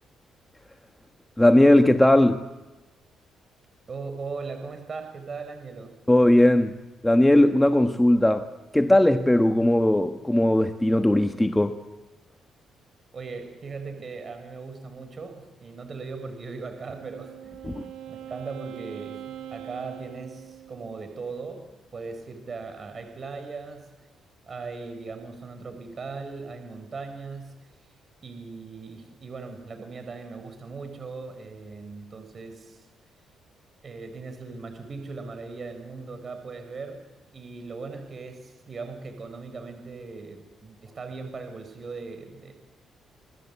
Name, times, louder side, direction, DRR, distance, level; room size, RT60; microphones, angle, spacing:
voice 1, 1.4-2.4 6.1-6.7 7.0-8.4 8.7-11.8 17.6-17.8, left 1 dB, 10° left, 1.3 m, -18 dB
voice 2, 3.9-5.9 13.1-17.6 18.1-23.9 24.5-27.7 28.2-32.8 33.8-37.0 37.3-42.5, right 4 dB, 40° right, 4.7 m, -39 dB
Wind instrument woodwind instrument, 16.7-21.1, right 11 dB, 80° right, 1.8 m, -42 dB
26.5 x 20.0 x 8.4 m
cardioid pair, 90°, 0 cm